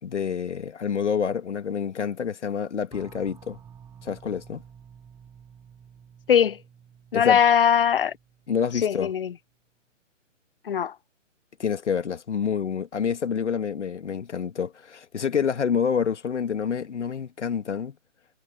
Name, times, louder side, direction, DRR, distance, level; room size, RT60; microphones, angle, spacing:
voice 1, 0.0-3.6 4.0-4.6 7.1-7.4 8.5-9.1 11.6-17.9, left 7 dB, 65° left, 2.4 m, -27 dB
sound 1, 2.9-9.2, right 7 dB, 10° right, 5.2 m, -51 dB
voice 2, 6.3-6.6 7.1-8.1 8.8-9.3 10.7-10.9, left 8 dB, 50° left, 0.4 m, -20 dB
hypercardioid pair, 150°, 38 cm